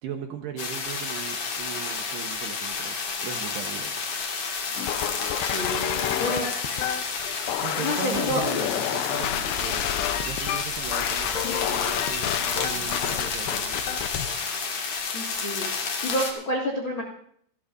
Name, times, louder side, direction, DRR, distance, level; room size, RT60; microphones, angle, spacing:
voice 1, 0.0-4.0 7.6-9.8 10.2-13.8, right 8 dB, 75° right, 4 dB, 2.7 m, -38 dB
sound 1, 0.6-16.3, left 5 dB, 55° left, 2.1 m, -30 dB
sound 2, 4.8-14.4, left 12 dB, 85° left, 2.4 m, -30 dB
voice 2, 5.3-6.5 7.7-8.4 15.1-17.0, equal, 70° left, -3 dB, 1.1 m, -29 dB
sound 3, 9.2-14.1, left 1 dB, 35° left, 7.0 m, -42 dB
27.0 x 13.0 x 2.6 m, 0.64 s
omnidirectional pair, 5.8 m